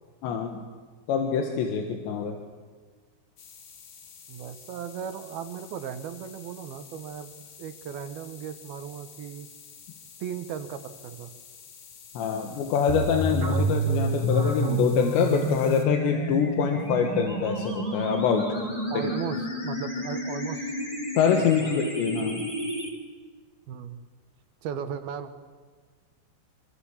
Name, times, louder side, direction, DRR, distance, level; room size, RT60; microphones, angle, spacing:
voice 1, 0.2-0.6 1.1-2.4 12.2-18.6 19.0-19.1 21.2-22.5, left 7 dB, 85° left, 3 dB, 3.8 m, -25 dB
sound 1, 3.4-15.8, left 7 dB, 65° left, 4.1 m, -49 dB
voice 2, 4.3-9.5 10.2-11.3 18.5-20.8 21.4-21.7 23.7-24.0 24.6-25.3, right 8 dB, 70° right, 9 dB, 2.7 m, -37 dB
sound 2, 12.9-22.9, right 1 dB, 10° left, 3.4 m, -29 dB
sound 3, 13.4-16.3 16.6-16.8 17.4-17.9, right 3 dB, 25° right, 1.9 m, -40 dB
27.0 x 24.0 x 7.2 m, 1.5 s
omnidirectional pair, 5.0 m